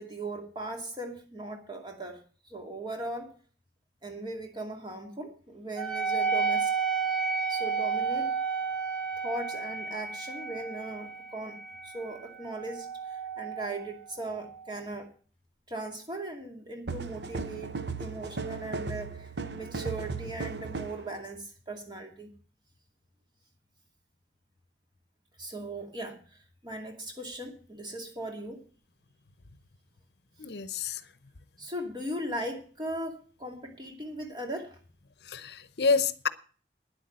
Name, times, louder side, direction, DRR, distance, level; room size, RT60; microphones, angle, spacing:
voice 1, 0.0-2.2 2.5-3.3 4.0-6.7 7.5-8.3 9.2-15.1 15.7-22.3 25.4-28.6 31.6-34.8, right 1 dB, 25° right, 2 dB, 2.5 m, -38 dB
Wind instrument woodwind instrument, 5.8-14.7, right 5 dB, 5° left, 2.6 m, -32 dB
sound 1, 16.9-21.1, right 4 dB, 75° right, 0.9 m, -36 dB
voice 2, 30.4-31.0 35.3-36.3, left 4 dB, 70° left, 14 dB, 0.8 m, -28 dB
10.0 x 8.3 x 7.5 m, 0.41 s
head